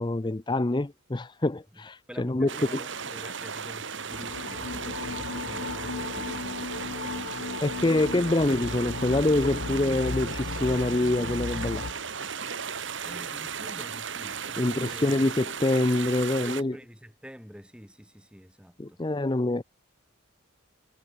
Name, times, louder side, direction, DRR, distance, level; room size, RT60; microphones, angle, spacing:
voice 1, 0.0-2.8 7.6-11.8 14.6-16.7 18.8-19.6, left 2 dB, 20° left, 0.6 m, -26 dB
voice 2, 1.7-8.5 13.0-15.1 16.4-19.0, equal, 5° right, 6.1 m, -47 dB
sound 1, 2.5-16.6, right 6 dB, 60° right, 2.1 m, -36 dB
sound 2, 4.1-11.9, left 4 dB, 60° left, 0.6 m, -36 dB
head